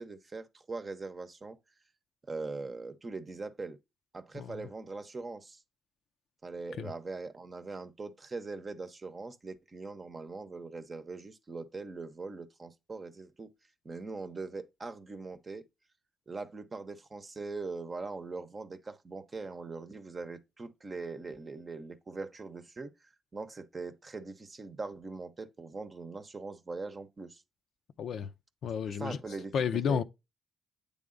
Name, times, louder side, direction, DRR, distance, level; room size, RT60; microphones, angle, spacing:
voice 1, 0.0-1.6 2.3-3.8 4.1-5.6 6.4-13.5 13.8-15.7 16.3-27.4 28.9-30.0, right 3 dB, 30° right, 0.8 m, -41 dB
voice 2, 4.3-4.7 6.8-6.9 28.0-28.3 28.6-29.2 29.5-30.0, left 7 dB, 70° left, 0.5 m, -31 dB
8.6 x 3.5 x 3.8 m
cardioid pair, 90°, 0 cm